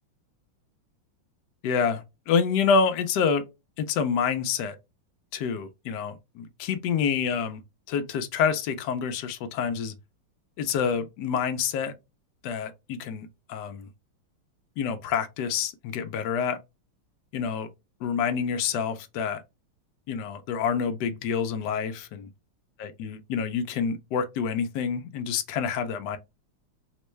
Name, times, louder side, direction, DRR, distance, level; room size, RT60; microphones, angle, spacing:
voice 1, 1.6-3.4 3.8-4.8 5.3-7.6 7.9-9.9 10.6-11.9 12.4-13.9 14.8-16.6 17.3-17.7 18.0-19.4 20.1-22.3 22.8-26.2, left 6 dB, 75° left, 0.9 m, -27 dB
4.3 x 2.2 x 3.0 m
omnidirectional pair, 2.4 m